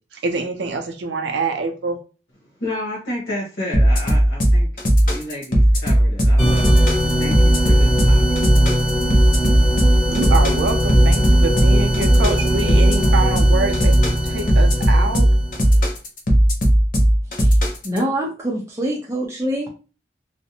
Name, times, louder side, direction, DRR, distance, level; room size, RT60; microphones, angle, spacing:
voice 1, 0.2-2.0 10.1-15.3, right 3 dB, 75° right, 0.5 m, -25 dB
voice 2, 2.6-4.7 5.1-6.8 7.2-8.4, left 1 dB, 90° left, 0.9 m, -31 dB
sound 1, 3.7-18.0, equal, 50° left, 0.6 m, -16 dB
sound 2, 6.4-15.7, equal, 20° left, 1.3 m, -21 dB
voice 3, 17.8-19.7, right 1 dB, 15° right, 0.5 m, -25 dB
2.5 x 2.0 x 2.7 m
head